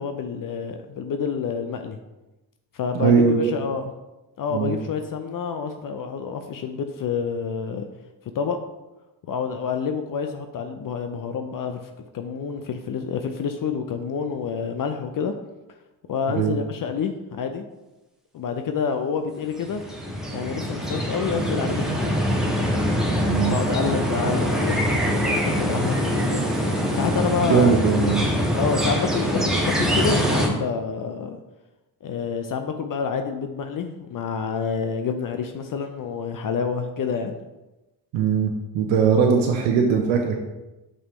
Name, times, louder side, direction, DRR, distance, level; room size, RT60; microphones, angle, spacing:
voice 1, 0.0-2.0 2.7-3.9 4.4-7.8 8.3-8.6 9.3-15.3 16.1-17.7 18.3-19.8 20.3-22.1 23.4-26.4 26.9-27.7 28.5-31.4 32.0-37.4, left 6 dB, 45° left, 6 dB, 0.6 m, -28 dB
voice 2, 2.9-3.5 4.5-4.7 16.3-16.6 23.2-23.6 27.4-28.2 38.1-40.4, right 6 dB, 75° right, 2 dB, 0.8 m, -20 dB
sound 1, 19.6-30.5, equal, ahead, 1.5 m, -24 dB
5.7 x 5.5 x 3.2 m, 1.0 s
hypercardioid pair, 50°, 47 cm